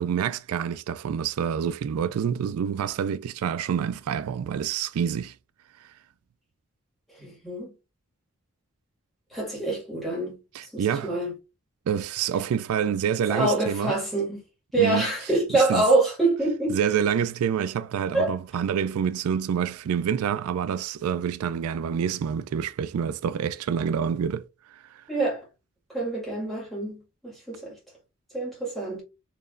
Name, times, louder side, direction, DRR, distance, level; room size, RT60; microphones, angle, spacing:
voice 1, 0.0-5.3 5.8-5.9 10.5-11.2 11.9-13.9 14.8-15.1 15.5-15.9 16.7-25.0, right 8 dB, 85° right, 0.3 m, -27 dB
voice 2, 7.2-7.7 9.3-10.4 10.7-11.3 13.3-14.4 14.7-16.8 18.1-18.3 25.1-25.4 25.9-27.7 28.3-29.0, right 2 dB, ahead, 1.8 m, -25 dB
4.5 x 3.0 x 2.5 m
head